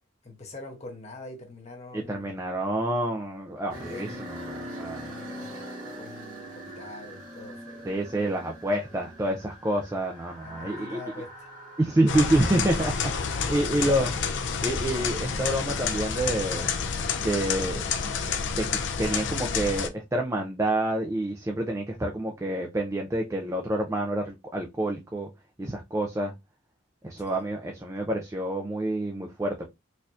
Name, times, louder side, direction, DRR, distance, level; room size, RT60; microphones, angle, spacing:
voice 1, 0.2-2.4 3.8-7.9 8.9-9.0 10.4-11.5 13.3-13.5 13.8-13.9 27.2-27.4, left 2 dB, 30° left, 0.9 m, -45 dB
voice 2, 1.9-5.1 7.8-11.0 11.8-14.1 14.6-16.7 17.2-17.8 18.5-25.3 25.6-26.3 27.0-29.6, right 1 dB, 15° right, 0.4 m, -28 dB
sound 1, 3.7-18.4, right 1 dB, 85° right, 1.6 m, -45 dB
sound 2, 9.6-14.1, equal, 80° left, 1.1 m, -48 dB
sound 3, 12.1-19.9, left 6 dB, 60° left, 0.4 m, -29 dB
4.1 x 2.7 x 2.4 m
head